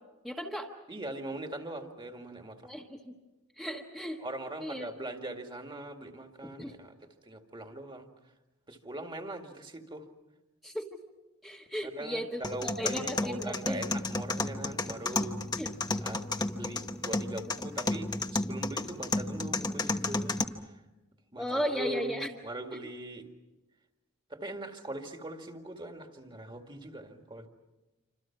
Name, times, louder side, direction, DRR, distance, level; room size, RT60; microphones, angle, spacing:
voice 1, 0.2-0.7 2.6-3.1 3.5-4.2 4.6-4.9 6.4-6.7 10.6-11.0 11.4-13.8 15.5-15.7 21.4-22.3 22.7-22.9, equal, ahead, -1 dB, 1.3 m, -36 dB
voice 2, 0.9-2.7 4.2-6.9 7.3-8.1 8.7-10.1 11.8-15.4 16.0-20.4 20.7-20.8 21.3-23.3 24.3-27.5, right 1 dB, 20° right, 4 dB, 2.0 m, -41 dB
sound 1, 12.4-20.4, left 2 dB, 20° left, 1.1 m, -32 dB
28.0 x 26.0 x 5.9 m, 1.1 s
head